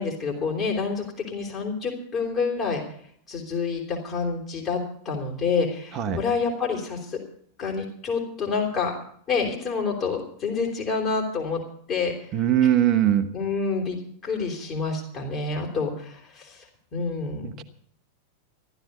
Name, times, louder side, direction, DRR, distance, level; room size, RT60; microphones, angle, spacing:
voice 1, 0.0-2.8 3.3-7.2 7.6-8.9 9.3-11.6 11.9-12.1 13.3-14.0 14.2-16.7 16.9-17.5, left 4 dB, 35° left, -2 dB, 3.7 m, -28 dB
voice 2, 12.3-13.3 17.4-17.6, right 10 dB, 35° right, 7 dB, 1.1 m, -21 dB
15.0 x 12.0 x 6.7 m, 0.63 s
figure-of-eight pair, 90°, 0 cm